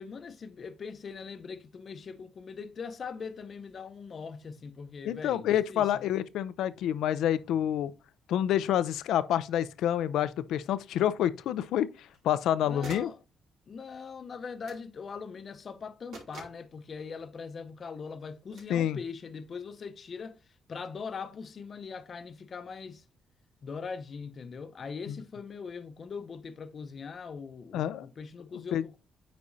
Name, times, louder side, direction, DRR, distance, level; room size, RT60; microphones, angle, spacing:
voice 1, 0.0-6.1 12.6-13.2 13.7-23.0 23.6-29.0, left 5 dB, 45° left, 0.7 m, -41 dB
voice 2, 5.1-7.9 8.3-11.9 12.2-13.1 18.7-19.0 27.7-28.1 28.7-28.8, left 11 dB, 85° left, 0.4 m, -28 dB
sound 1, 12.0-12.4 12.8-13.2 14.6-14.9 16.1-16.7 18.5-18.8, right 3 dB, 80° right, 3.3 m, -47 dB
9.5 x 4.2 x 2.7 m
cardioid pair, 90°, 0 cm